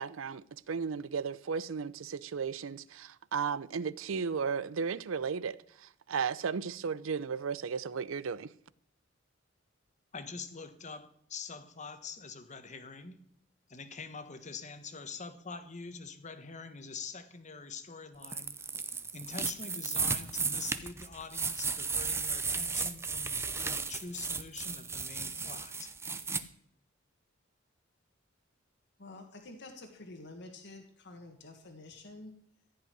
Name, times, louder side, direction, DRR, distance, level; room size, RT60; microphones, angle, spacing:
voice 1, 0.0-8.5, right 6 dB, 80° right, 0.5 m, -35 dB
voice 2, 10.1-13.3 13.7-18.6 19.1-25.9, left 4 dB, 35° left, 1.2 m, -45 dB
sound 1, 18.2-26.4, right 4 dB, 15° right, 0.6 m, -35 dB
voice 3, 29.0-32.3, left 2 dB, 60° left, 1.7 m, -49 dB
15.0 x 5.6 x 9.4 m
head